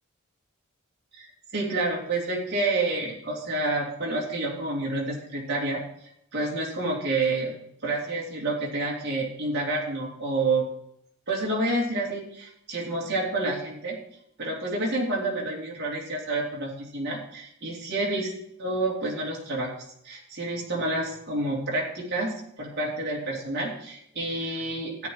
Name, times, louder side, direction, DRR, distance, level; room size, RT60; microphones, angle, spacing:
voice 1, 1.1-5.8 6.3-7.5 7.8-10.6 11.3-14.0 14.4-18.3 18.6-19.7 20.0-25.1, right 2 dB, 55° right, -3 dB, 3.1 m, -29 dB
13.5 x 10.5 x 3.2 m, 0.75 s
head